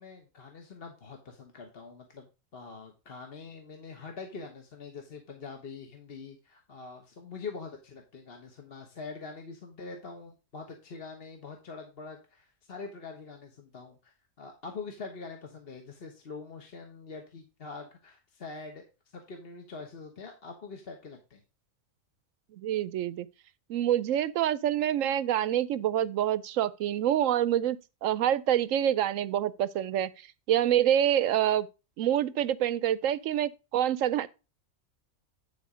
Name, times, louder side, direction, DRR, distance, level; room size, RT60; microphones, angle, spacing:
voice 1, 0.0-21.4, left 4 dB, 45° left, 1.3 m, -44 dB
voice 2, 22.5-23.3 23.7-30.1 30.5-31.7 32.0-34.3, right 11 dB, 70° right, 0.9 m, -26 dB
10.5 x 4.2 x 5.0 m
omnidirectional pair, 1.5 m